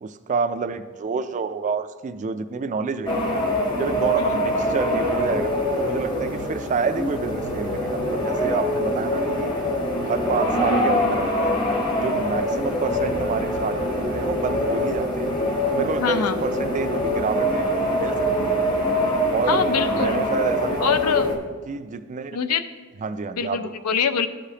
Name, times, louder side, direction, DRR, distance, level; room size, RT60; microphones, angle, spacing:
voice 1, 0.0-3.1 3.8-9.5 10.0-11.5 12.0-15.3 15.7-18.1 18.4-18.6 19.3-21.0 21.7-22.4 23.0-23.7, right 5 dB, 35° right, 11 dB, 0.3 m, -28 dB
sound 1, 3.1-21.4, equal, 20° left, 0.9 m, -24 dB
voice 2, 16.0-16.4 19.5-20.3 20.8-21.3 22.3-22.6 23.4-24.3, left 6 dB, 80° left, 10 dB, 0.5 m, -24 dB
13.5 x 5.0 x 2.8 m, 1.5 s
head